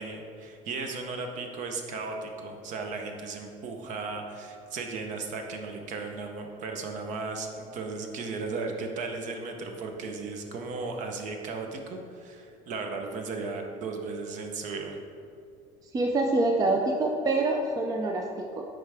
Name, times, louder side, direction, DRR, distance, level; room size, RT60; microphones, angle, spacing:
voice 1, 0.0-15.0, right 3 dB, 50° right, 4 dB, 0.8 m, -36 dB
voice 2, 15.9-18.7, right 2 dB, 20° right, 2 dB, 0.5 m, -26 dB
7.6 x 4.8 x 3.5 m, 2.4 s
cardioid pair, 135°, 16 cm